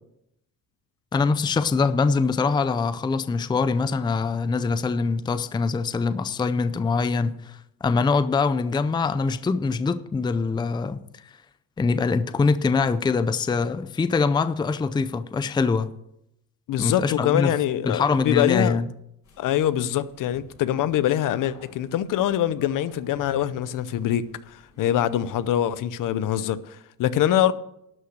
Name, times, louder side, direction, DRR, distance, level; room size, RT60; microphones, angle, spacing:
voice 1, 1.1-11.2 11.8-15.9 16.8-17.6 17.8-18.9, left 4 dB, 15° left, 0.4 m, -23 dB
voice 2, 16.7-18.8 19.4-27.5, left 11 dB, 65° left, 0.7 m, -24 dB
sound 1, 19.2-25.8, left 3 dB, 50° left, 5.8 m, -52 dB
12.0 x 5.8 x 7.9 m
cardioid pair, 110°, 35 cm